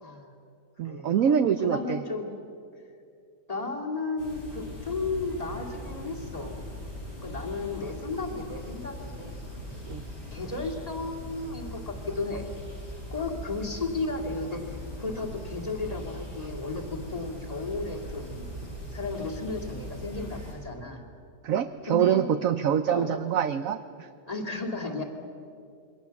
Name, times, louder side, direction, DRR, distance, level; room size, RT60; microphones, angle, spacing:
voice 1, 0.0-0.4 0.8-2.3 3.5-6.6 7.2-9.4 10.3-12.5 13.1-18.6 18.9-21.0 21.9-22.3 22.9-23.1 24.3-25.0, left 3 dB, 20° left, 1 dB, 2.8 m, -34 dB
voice 2, 0.8-2.0 9.9-10.0 21.4-24.1, right 8 dB, 60° right, 9 dB, 1.0 m, -25 dB
sound 1, 4.2-20.5, left 1 dB, 80° left, 8.9 m, -40 dB
28.0 x 23.0 x 7.1 m, 2.5 s
omnidirectional pair, 1.8 m